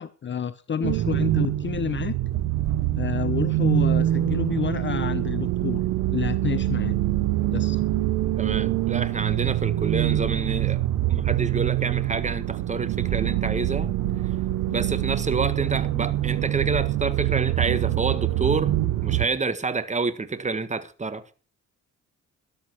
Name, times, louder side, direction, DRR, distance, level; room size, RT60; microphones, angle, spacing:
voice 1, 0.0-2.2 2.9-5.8 6.1-7.0 7.5-7.8, left 7 dB, 40° left, 0.8 m, -29 dB
sound 1, 0.8-19.3, right 14 dB, 90° right, 1.1 m, -25 dB
voice 2, 8.4-10.8 11.1-13.9 14.7-18.7 19.0-21.3, right 4 dB, 25° right, 1.6 m, -28 dB
13.5 x 11.5 x 4.7 m
cardioid pair, 90°, 30 cm